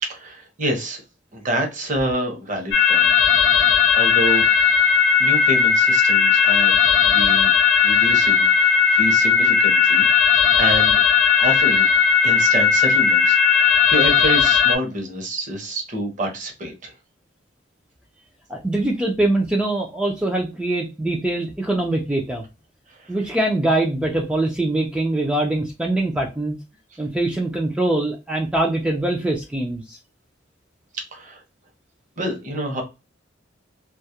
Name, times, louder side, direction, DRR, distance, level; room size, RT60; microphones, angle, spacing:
voice 1, 0.0-1.0 1.3-3.1 3.6-4.5 5.2-7.5 7.8-10.1 10.6-11.0 11.4-11.9 12.2-16.9 23.0-23.1 30.9-31.4 32.2-32.8, right 1 dB, 40° right, 2 dB, 0.8 m, -27 dB
sound 1, 2.7-14.8, left 7 dB, 70° left, 0.6 m, -16 dB
voice 2, 18.5-22.4 23.1-26.6 27.0-30.0, right 2 dB, 5° right, 1 dB, 0.3 m, -23 dB
2.3 x 2.0 x 2.7 m, 0.27 s
head